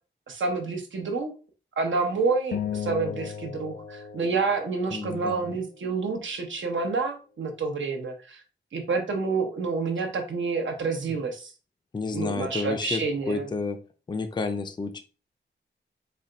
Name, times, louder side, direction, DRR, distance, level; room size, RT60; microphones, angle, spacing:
voice 1, 0.3-1.3 1.8-8.4 8.7-11.5 12.1-13.5, right 4 dB, 80° right, 3 dB, 0.9 m, -28 dB
sound 1, 2.5-5.1, left 8 dB, 60° left, 0.7 m, -35 dB
voice 2, 4.9-5.5 11.9-13.8 14.1-15.0, left 4 dB, 25° left, 7 dB, 0.4 m, -30 dB
4.2 x 2.2 x 3.8 m, 0.34 s
wide cardioid pair, 120°, 19 cm